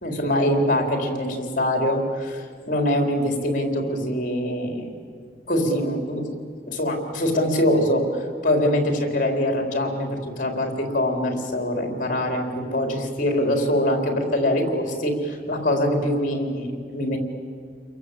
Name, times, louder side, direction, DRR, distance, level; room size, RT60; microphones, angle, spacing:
voice 1, 0.0-4.9 5.5-6.3 6.7-8.0 8.4-17.2, left 1 dB, 50° left, 3 dB, 4.1 m, -23 dB
29.5 x 22.5 x 8.5 m, 2.2 s
head